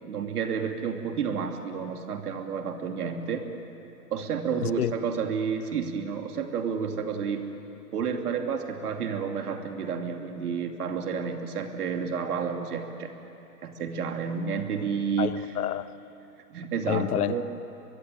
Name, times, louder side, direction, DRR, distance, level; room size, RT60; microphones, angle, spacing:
voice 1, 0.0-3.5 4.1-7.4 7.9-13.1 13.6-15.3 16.5-17.4, right 6 dB, 70° right, 5 dB, 2.8 m, -30 dB
voice 2, 4.6-4.9 15.2-15.9 16.9-17.4, left 11 dB, 70° left, 16 dB, 1.0 m, -28 dB
23.0 x 21.5 x 9.2 m, 2.9 s
hypercardioid pair, 125°, 47 cm